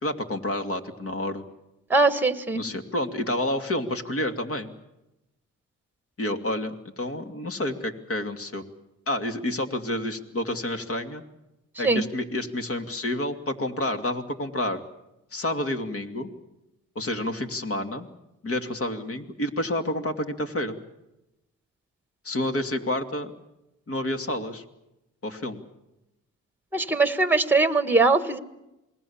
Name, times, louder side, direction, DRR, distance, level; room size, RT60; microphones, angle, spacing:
voice 1, 0.0-1.4 2.5-4.7 6.2-8.6 9.1-11.2 11.8-14.8 15.3-16.3 17.0-18.1 18.4-20.8 22.2-23.3 23.9-24.6 25.2-25.6, left 1 dB, 45° left, 6 dB, 2.6 m, -29 dB
voice 2, 1.9-2.6 11.8-12.0 26.7-28.4, right 3 dB, 5° right, 11 dB, 1.6 m, -21 dB
28.0 x 20.5 x 7.2 m, 0.93 s
cardioid pair, 85°, 33 cm